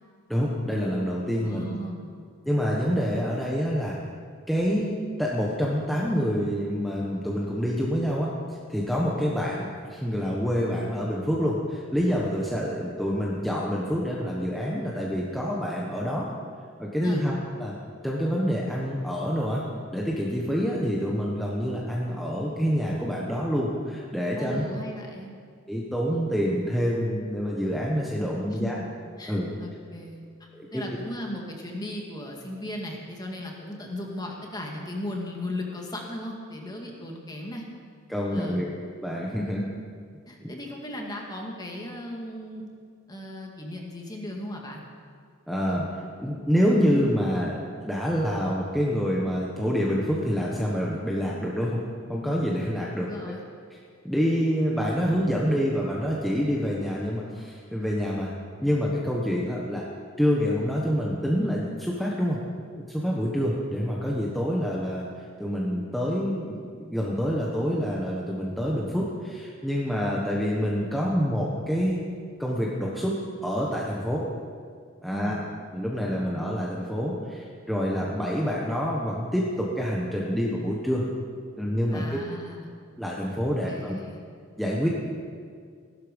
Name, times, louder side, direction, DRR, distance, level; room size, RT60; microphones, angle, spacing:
voice 1, 0.3-1.7 2.5-4.0 4.5-16.3 16.8-17.3 17.6-17.8 18.0-19.6 19.9-24.6 25.7-28.8 29.3-29.5 30.5-30.9 38.1-38.7 39.0-39.6 45.5-45.9 46.2-51.8 52.1-53.3 54.0-58.3 58.6-59.8 60.2-62.4 62.8-65.1 65.4-66.6 66.9-72.0 72.4-73.2 73.4-74.2 75.0-75.3 75.7-81.1 81.6-82.0 83.0-83.9 84.6-84.9, equal, ahead, -4 dB, 1.3 m, -27 dB
voice 2, 1.4-2.1 17.0-17.3 24.4-25.3 28.5-28.9 29.2-30.2 30.7-37.6 38.3-38.7 39.4-39.8 40.3-42.7 43.1-44.8 53.0-53.4 75.1-75.4 81.9-82.7 83.7-84.2, left 1 dB, 20° left, 0 dB, 2.1 m, -36 dB
17.0 x 12.0 x 5.4 m, 2.1 s
head